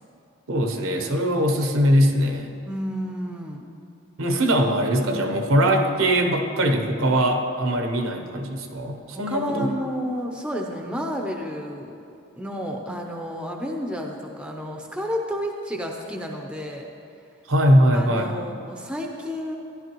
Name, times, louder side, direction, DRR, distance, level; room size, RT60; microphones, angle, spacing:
voice 1, 0.5-2.5 4.2-9.7 17.5-18.3, equal, 75° right, 4 dB, 0.9 m, -21 dB
voice 2, 2.7-3.7 9.1-11.9 12.4-16.9 17.9-19.6, equal, 5° right, 1 dB, 0.6 m, -31 dB
14.0 x 11.0 x 3.0 m, 2.5 s
head